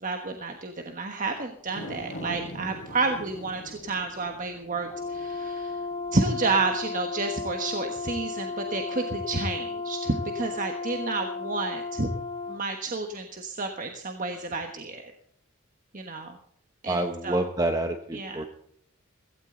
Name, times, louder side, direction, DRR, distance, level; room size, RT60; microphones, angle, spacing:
voice 1, 0.0-5.8 6.1-12.1 12.5-15.0 15.9-16.4 16.8-17.0 17.2-17.5 18.1-18.5, right 3 dB, 40° right, 4 dB, 1.3 m, -30 dB
sound 1, 1.6-8.1 8.5-8.6, left 1 dB, 55° left, 4.8 m, -44 dB
Brass instrument, 4.9-12.6, left 4 dB, 25° left, 0.6 m, -34 dB
voice 2, 16.9-18.5, right 1 dB, 20° right, 6 dB, 0.9 m, -27 dB
16.5 x 16.0 x 3.9 m, 0.65 s
head